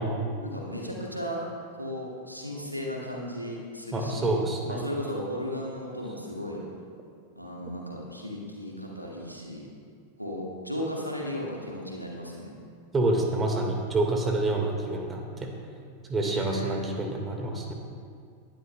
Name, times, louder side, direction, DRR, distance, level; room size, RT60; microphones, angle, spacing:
voice 1, 0.4-1.4 1.8-4.3 4.7-6.6 7.4-9.7 10.2-12.6 16.2-16.9, equal, 90° right, -2 dB, 1.9 m, -35 dB
voice 2, 3.9-4.8 12.9-15.5 16.1-17.7, right 2 dB, 20° right, 2 dB, 1.7 m, -27 dB
19.5 x 11.5 x 2.3 m, 2.3 s
figure-of-eight pair, 90°, 0 cm